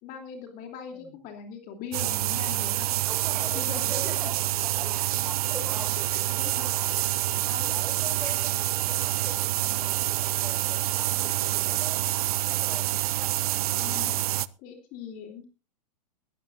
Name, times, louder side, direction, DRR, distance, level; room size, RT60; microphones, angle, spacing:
voice 1, 0.0-3.1 3.5-3.8 5.0-5.1 6.0-7.1 7.4-7.7 13.7-14.2 14.6-15.5, left 7 dB, 40° left, 4 dB, 2.9 m, -41 dB
sound 1, 1.9-14.5, right 15 dB, 60° right, 0.6 m, -27 dB
voice 2, 3.1-7.1 7.6-13.1 13.6-14.2, right 1 dB, 5° right, 5 dB, 5.1 m, -43 dB
21.0 x 14.5 x 2.5 m, 0.31 s
hypercardioid pair, 105°, 21 cm